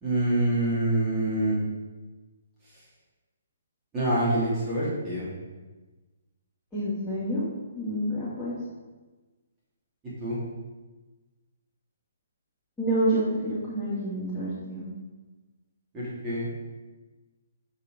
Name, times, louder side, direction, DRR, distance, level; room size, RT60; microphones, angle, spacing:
voice 1, 0.0-1.5 3.9-5.3 10.2-10.4 15.9-16.5, right 1 dB, 15° right, -9 dB, 2.8 m, -26 dB
voice 2, 6.7-8.6 12.8-14.9, right 1 dB, 5° left, -13 dB, 2.4 m, -28 dB
8.9 x 4.4 x 5.1 m, 1.2 s
figure-of-eight pair, 130°, 0 cm